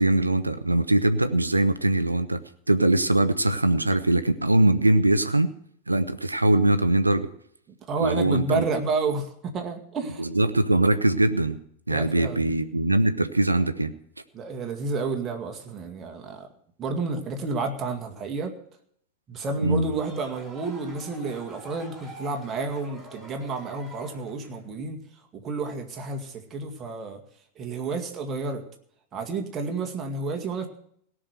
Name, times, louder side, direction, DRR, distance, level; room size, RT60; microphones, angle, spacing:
voice 1, 0.0-2.4 2.7-5.5 5.9-7.3 8.0-8.6 10.2-11.6 11.9-13.9 19.6-19.9, right 2 dB, 85° right, 11 dB, 0.8 m, -22 dB
voice 2, 7.9-10.2 11.9-12.5 14.3-16.5 16.8-18.5 19.3-25.0 25.4-27.2 27.6-28.6 29.1-30.7, right 3 dB, 25° right, 3 dB, 2.1 m, -30 dB
sound 1, 19.8-24.7, right 1 dB, 5° right, 6.3 m, -46 dB
17.5 x 6.2 x 8.1 m, 0.66 s
figure-of-eight pair, 90°, 0 cm